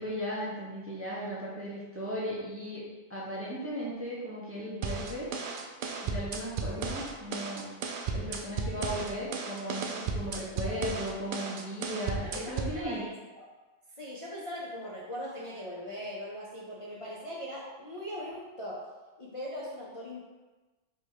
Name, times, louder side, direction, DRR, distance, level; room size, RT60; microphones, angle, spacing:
voice 1, 0.0-2.8 3.1-5.3 6.0-7.7 8.1-13.0, equal, 15° right, -7 dB, 0.8 m, -36 dB
sound 1, 4.8-12.8, right 4 dB, 60° right, 0.6 m, -35 dB
voice 2, 10.3-10.8 12.2-13.5 14.0-18.8 19.2-20.2, equal, 35° left, -8 dB, 0.6 m, -40 dB
3.7 x 2.9 x 4.6 m, 1.2 s
omnidirectional pair, 1.2 m